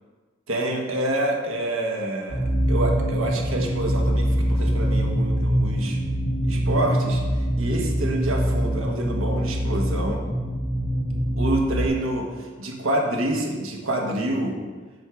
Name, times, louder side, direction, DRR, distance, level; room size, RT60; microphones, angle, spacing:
voice 1, 0.5-6.0 6.4-10.2 11.4-14.6, right 1 dB, 75° right, 0 dB, 1.2 m, -27 dB
sound 1, 2.3-11.9, equal, 20° left, 1.5 m, -24 dB
7.7 x 3.6 x 5.8 m, 1.4 s
head